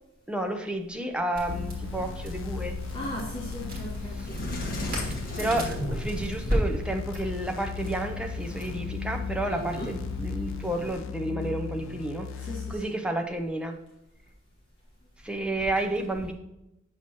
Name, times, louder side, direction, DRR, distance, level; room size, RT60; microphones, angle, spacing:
voice 1, 0.3-2.8 4.2-4.3 5.4-13.8 15.2-16.3, right 1 dB, 5° right, 3 dB, 0.6 m, -31 dB
Crackle, 1.3-10.9, equal, 45° right, 2.3 m, -35 dB
sound 1, 1.5-12.7, left 7 dB, 65° left, 0.3 m, -37 dB
voice 2, 2.9-4.5 5.3-5.7 9.4-9.9 12.4-12.9 15.5-15.7, equal, 25° left, -7 dB, 1.9 m, -38 dB
Sliding door, 3.7-3.8 4.2-6.5, left 1 dB, 45° left, 1.4 m, -36 dB
8.7 x 6.1 x 2.9 m, 0.88 s
head